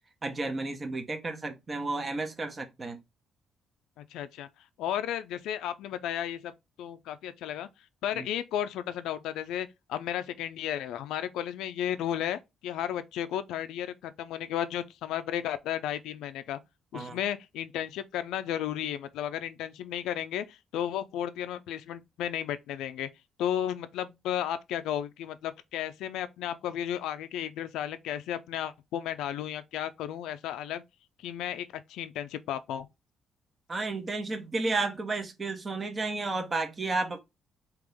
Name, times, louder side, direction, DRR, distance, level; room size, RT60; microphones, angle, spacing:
voice 1, 0.2-3.0 8.2-8.3 16.9-17.2 33.7-37.2, right 3 dB, 35° right, 0.9 m, -32 dB
voice 2, 4.0-4.5 4.8-6.5 6.8-7.7 8.0-16.6 16.9-23.1 23.4-30.8 31.2-32.9, left 10 dB, 90° left, 0.3 m, -33 dB
3.6 x 2.9 x 3.4 m
cardioid pair, 90°, 0 cm